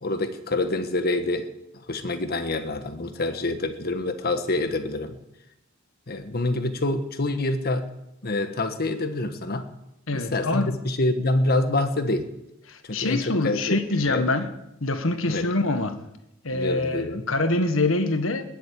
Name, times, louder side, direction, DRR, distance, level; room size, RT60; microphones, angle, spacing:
voice 1, 0.0-5.2 6.1-7.9 8.2-9.7 10.1-12.3 12.8-14.3 15.3-15.5 16.5-17.3, left 2 dB, 50° left, 1.5 m, -26 dB
voice 2, 10.1-10.8 12.7-14.5 14.8-16.0 16.4-18.4, left 2 dB, 70° left, 1.6 m, -25 dB
20.5 x 8.0 x 8.6 m
head